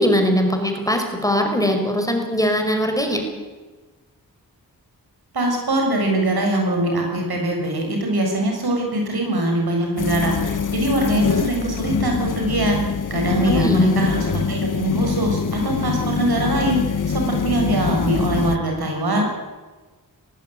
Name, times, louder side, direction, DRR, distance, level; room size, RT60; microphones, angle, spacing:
voice 1, 0.0-3.2 13.5-14.0, equal, 10° left, 4 dB, 5.2 m, -20 dB
voice 2, 5.3-12.8 13.1-16.8 17.1-19.2, right 1 dB, 85° right, 1 dB, 7.4 m, -22 dB
sound 1, 10.0-18.6, left 6 dB, 55° left, 1.2 m, -24 dB
19.0 x 19.0 x 9.2 m, 1.3 s
cardioid pair, 65°, 37 cm